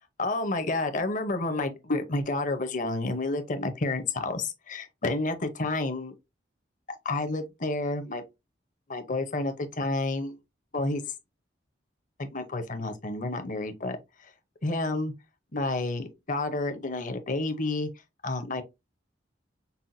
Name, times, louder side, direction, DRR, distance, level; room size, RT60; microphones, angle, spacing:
voice 1, 0.2-6.1 7.0-8.2 8.9-10.4 10.7-11.0 12.2-14.0 14.6-15.1 15.5-17.9 18.2-18.6, left 2 dB, 45° left, 0.7 m, -30 dB
5.5 x 2.2 x 2.6 m
head